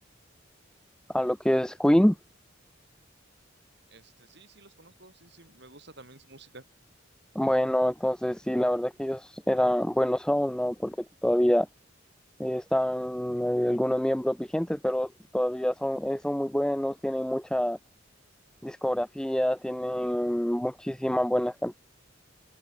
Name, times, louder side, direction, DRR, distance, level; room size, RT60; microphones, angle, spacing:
voice 1, 1.1-2.2 7.3-11.0 11.2-11.7 12.4-17.8 18.6-21.7, equal, 5° left, 0.5 m, -26 dB
voice 2, 3.9-6.6, right 2 dB, 55° right, 5.1 m, -52 dB
head